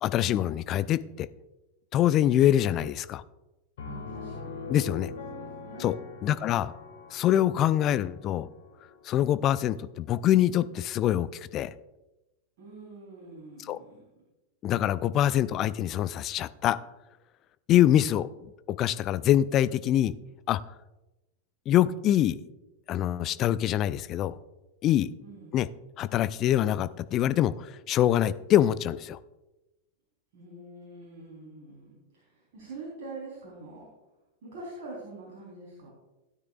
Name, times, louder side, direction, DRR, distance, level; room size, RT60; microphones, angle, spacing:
voice 1, 0.0-1.3 1.9-3.2 4.7-5.1 5.8-6.0 6.2-6.7 7.1-8.5 9.0-11.7 13.6-13.8 14.6-16.8 17.7-20.1 20.5-20.6 21.7-22.4 22.9-24.3 24.8-25.1 25.5-25.7 26.0-29.2, left 12 dB, 35° left, 15 dB, 0.4 m, -24 dB
Piano, 3.8-9.3, left 4 dB, 60° left, 1.9 m, -42 dB
voice 2, 3.8-4.6 5.3-5.9 6.3-6.7 12.6-14.0 25.2-25.6 30.3-33.9 34.4-35.9, right 2 dB, 50° right, -3 dB, 3.5 m, -45 dB
16.5 x 9.7 x 2.4 m, 1.0 s
figure-of-eight pair, 90°, 0 cm